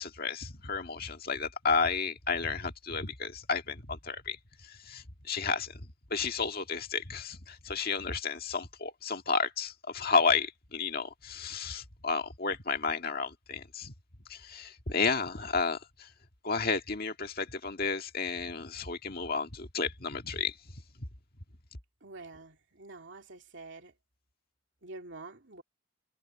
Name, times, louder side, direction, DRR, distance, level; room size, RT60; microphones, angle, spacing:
voice 1, 0.0-4.4 4.6-5.8 6.1-13.9 14.3-16.1 16.4-20.5, left 5 dB, 45° left, 1.9 m, -32 dB
voice 2, 22.0-23.9 24.8-25.6, right 3 dB, 60° right, 3.2 m, -47 dB
head